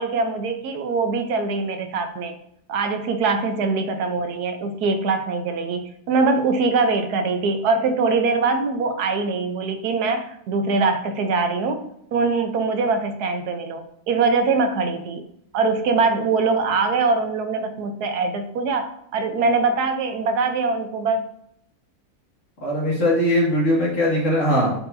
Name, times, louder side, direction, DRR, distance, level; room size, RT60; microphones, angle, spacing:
voice 1, 0.0-2.3 2.7-15.2 15.5-21.2, right 4 dB, 75° right, 7 dB, 1.2 m, -23 dB
voice 2, 22.6-24.8, equal, 50° left, -4 dB, 2.3 m, -20 dB
8.5 x 4.6 x 2.6 m, 0.73 s
omnidirectional pair, 1.7 m